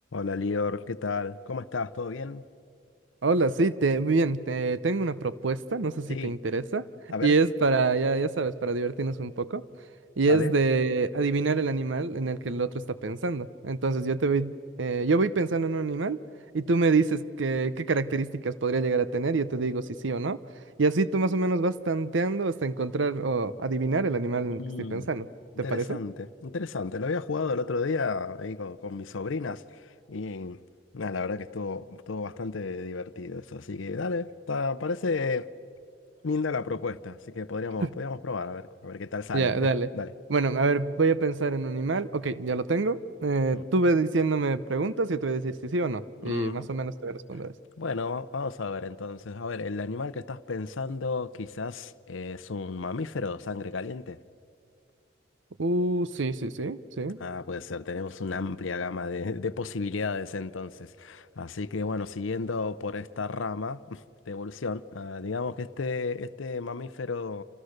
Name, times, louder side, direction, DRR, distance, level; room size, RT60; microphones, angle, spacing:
voice 1, 0.1-2.4 6.1-6.3 7.1-7.4 10.3-10.5 24.6-25.1 25.6-30.6 30.9-35.5 36.2-40.1 43.5-43.6 46.2-46.7 47.3-47.4 47.8-54.2 57.2-67.4, left 4 dB, 85° left, 0.6 m, -33 dB
voice 2, 3.2-6.8 7.2-9.6 10.2-14.5 14.8-16.2 16.5-20.4 20.8-24.6 24.9-25.3 25.7-26.0 37.8-37.9 39.3-39.9 40.3-47.5 55.6-57.2, right 3 dB, 75° right, 0.8 m, -26 dB
29.5 x 27.5 x 6.6 m
head